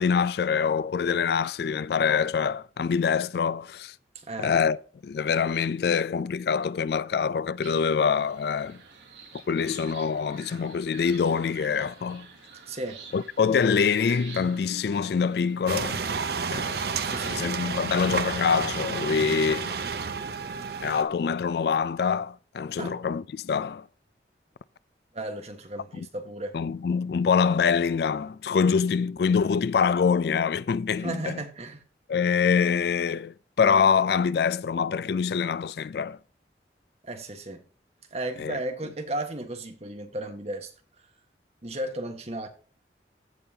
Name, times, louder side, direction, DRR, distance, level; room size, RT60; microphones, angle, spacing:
voice 1, 0.0-3.9 4.4-4.8 5.0-8.8 9.5-12.3 13.1-16.1 16.5-16.9 17.3-19.7 20.8-23.9 25.9-26.1 26.5-31.4 32.1-36.2 38.4-38.6, left 6 dB, 60° left, 0.3 m, -25 dB
voice 2, 4.1-4.6 9.5-9.8 12.7-13.0 17.0-17.6 22.8-23.0 25.1-26.6 31.0-31.8 37.0-37.6 38.1-40.7 41.6-42.5, right 1 dB, 35° right, 1.3 m, -35 dB
sound 1, 7.6-17.3, right 5 dB, 80° right, 2.6 m, -47 dB
sound 2, 15.7-21.0, right 5 dB, 60° right, 0.7 m, -31 dB
15.5 x 5.4 x 2.8 m
head